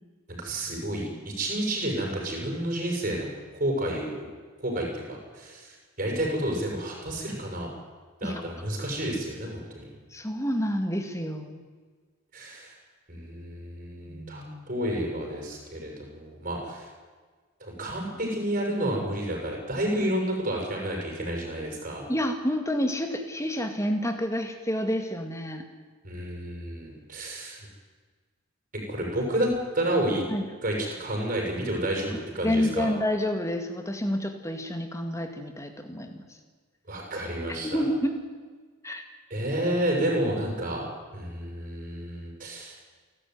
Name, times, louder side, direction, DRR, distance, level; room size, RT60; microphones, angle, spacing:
voice 1, 0.4-4.3 4.6-7.7 8.2-9.9 12.3-12.7 13.1-16.9 17.6-22.0 26.0-27.7 28.9-30.2 30.6-32.9 36.9-37.8 39.3-40.8 41.1-42.7, right 1 dB, 40° right, 0 dB, 7.0 m, -30 dB
voice 2, 10.1-11.6 14.1-14.7 22.1-25.6 30.3-30.4 32.4-36.2 37.6-38.1 38.8-39.0, equal, 15° left, 6 dB, 2.0 m, -29 dB
29.5 x 12.5 x 9.5 m, 1.5 s
head